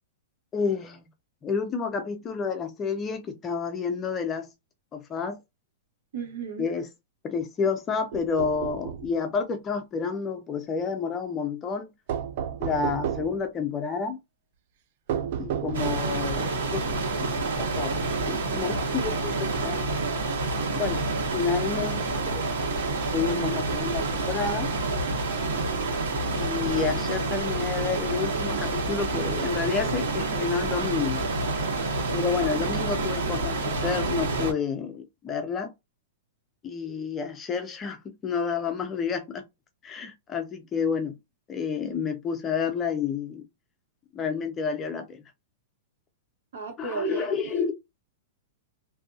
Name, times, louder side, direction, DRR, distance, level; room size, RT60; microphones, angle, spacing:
voice 1, 0.5-1.1 1.4-4.5 4.9-5.4 6.6-6.9 7.2-11.9 12.6-14.2 15.4-16.9 17.2-17.9 18.3-19.9 20.8-21.0 21.3-22.5 23.1-24.7 26.3-31.2 32.1-35.7 36.6-39.4 39.8-41.2 41.5-43.4 44.1-45.2 46.8-47.7, left 5 dB, 15° left, 0.4 m, -30 dB
voice 2, 6.1-6.7 46.5-47.6, right 6 dB, 70° right, 1.4 m, -34 dB
sound 1, 8.1-9.1 12.1-13.4 15.1-16.2, right 9 dB, 50° right, 0.3 m, -31 dB
sound 2, 15.7-34.5, right 3 dB, 85° right, 1.3 m, -28 dB
2.6 x 2.6 x 2.4 m
supercardioid pair, 160°, 0 cm